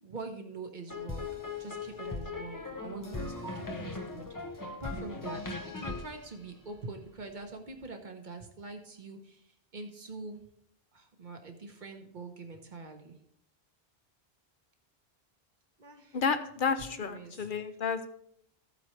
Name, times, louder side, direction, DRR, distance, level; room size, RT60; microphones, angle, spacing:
voice 1, 0.0-4.3 4.8-9.4 9.7-10.4 10.9-13.2 15.8-16.2 16.9-17.5, right 3 dB, 50° right, 5 dB, 1.2 m, -44 dB
sound 1, 0.9-7.2, left 3 dB, 25° left, 0.6 m, -39 dB
voice 2, 16.1-18.1, left 5 dB, 60° left, 9 dB, 0.8 m, -31 dB
14.0 x 8.1 x 3.2 m, 0.73 s
omnidirectional pair, 1.0 m